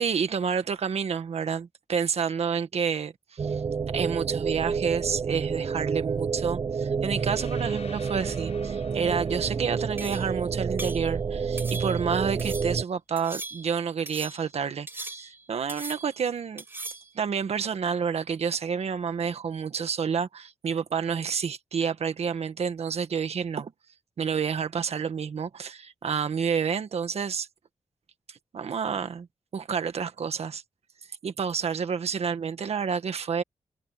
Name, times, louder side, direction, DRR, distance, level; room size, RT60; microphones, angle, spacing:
voice 1, 0.0-3.6 3.9-16.6 17.2-23.7 24.2-27.5 28.3-29.3 29.5-30.6 31.2-33.4, right 6 dB, 65° right, 1.6 m, -29 dB
sound 1, 3.4-12.8, right 5 dB, 35° right, 0.4 m, -29 dB
sound 2, 7.0-11.0, left 6 dB, 70° left, 6.4 m, -50 dB
sound 3, 10.0-10.4 10.8-11.1 11.6-12.1 12.4-12.8 13.2-13.8 14.1-14.5 14.9-15.4 15.7-16.2 16.6-17.1, right 2 dB, 20° right, 3.0 m, -39 dB
wide cardioid pair, 160°, 12 cm